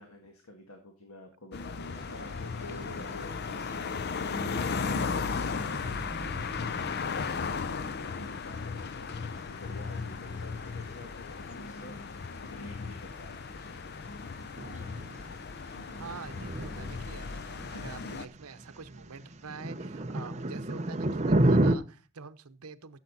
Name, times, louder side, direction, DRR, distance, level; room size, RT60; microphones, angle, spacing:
voice 1, 0.0-6.0 7.7-14.1 17.3-17.4, left 2 dB, 80° left, 4 dB, 1.8 m, -50 dB
sound 1, 1.5-18.3, left 5 dB, 45° left, 0.5 m, -36 dB
sound 2, 1.9-21.7, right 1 dB, 30° right, 0.6 m, -35 dB
voice 2, 16.0-23.0, right 5 dB, 80° right, 12 dB, 0.8 m, -46 dB
14.0 x 7.4 x 4.1 m, 0.33 s
head